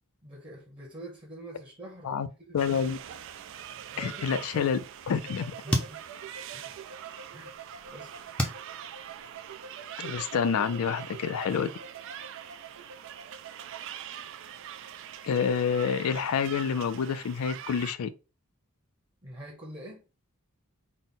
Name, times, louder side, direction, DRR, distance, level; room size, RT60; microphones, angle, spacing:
voice 1, 0.2-2.6 3.9-4.3 4.5-4.7 5.6-6.0 6.5-6.8 7.3-7.6 7.9-8.1 19.2-20.0, right 1 dB, 20° right, 0.8 m, -45 dB
voice 2, 2.5-3.0 4.0-4.8 5.1-5.5 10.0-11.7 15.2-18.1, left 6 dB, 70° left, 0.4 m, -28 dB
sound 1, 2.6-17.9, right 10 dB, 55° right, 0.3 m, -43 dB
sound 2, 5.1-13.8, right 6 dB, 85° right, 0.7 m, -47 dB
sound 3, 5.7-7.1 7.6-9.7, equal, 5° left, 0.5 m, -34 dB
4.0 x 2.1 x 3.7 m
head